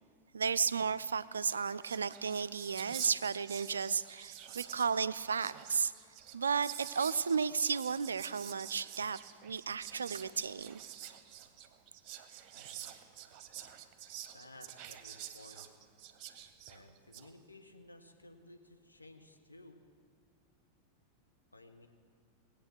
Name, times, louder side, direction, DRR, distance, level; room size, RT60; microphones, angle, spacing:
voice 1, 0.3-5.9 6.3-10.8, right 6 dB, 70° right, 16 dB, 0.4 m, -33 dB
Whispering, 1.4-17.3, right 11 dB, 40° right, 1.0 m, -48 dB
voice 2, 12.5-12.9 14.3-15.7 16.7-19.8 21.5-21.9, left 1 dB, 85° left, 3 dB, 1.3 m, -56 dB
20.0 x 8.4 x 6.1 m, 2.3 s
figure-of-eight pair, 90°, 0 cm